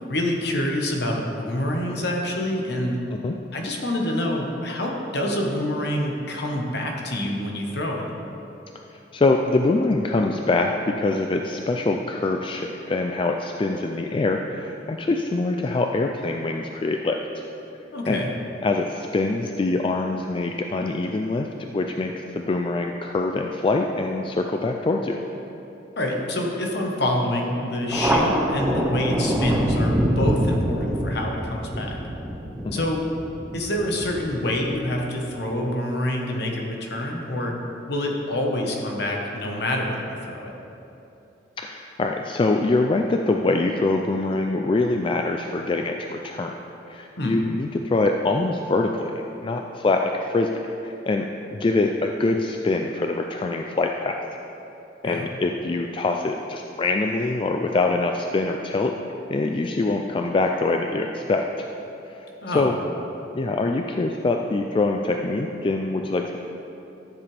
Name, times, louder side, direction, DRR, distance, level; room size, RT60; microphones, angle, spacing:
voice 1, 0.0-3.0 3.5-8.1 17.9-18.3 26.0-32.0 32.7-33.0 33.5-37.6 37.9-40.5 47.2-47.4 55.0-55.3 62.4-62.7, left 1 dB, 60° left, 1 dB, 1.2 m, -26 dB
voice 2, 9.1-17.4 18.1-18.2 18.6-21.5 21.7-25.2 32.6-32.8 41.6-46.5 46.9-49.1 49.4-51.3 51.5-54.2 55.0-58.9 59.3-61.7 62.1-62.3 62.5-62.8 63.3-66.4, left 2 dB, 30° left, 3 dB, 0.3 m, -24 dB
Thunder, 27.9-35.0, equal, 10° right, 0.7 m, -25 dB
13.0 x 7.3 x 3.4 m, 2.9 s
head